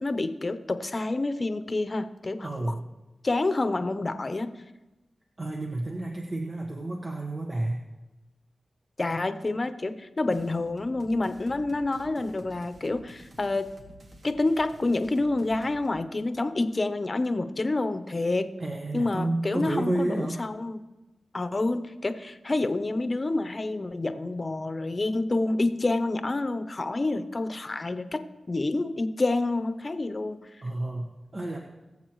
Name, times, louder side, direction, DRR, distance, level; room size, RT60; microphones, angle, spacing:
voice 1, 0.0-2.5 3.2-4.5 9.0-13.7 14.2-18.5 18.9-20.8 21.3-30.4, left 2 dB, 40° left, 9 dB, 0.9 m, -28 dB
voice 2, 2.4-2.8 5.4-7.8 18.6-20.4 30.6-31.6, right 2 dB, 45° right, -1 dB, 1.4 m, -30 dB
sound 1, 10.3-15.9, right 1 dB, 65° right, 1.5 m, -51 dB
21.5 x 7.4 x 3.1 m, 1.1 s
cardioid pair, 55°, 0 cm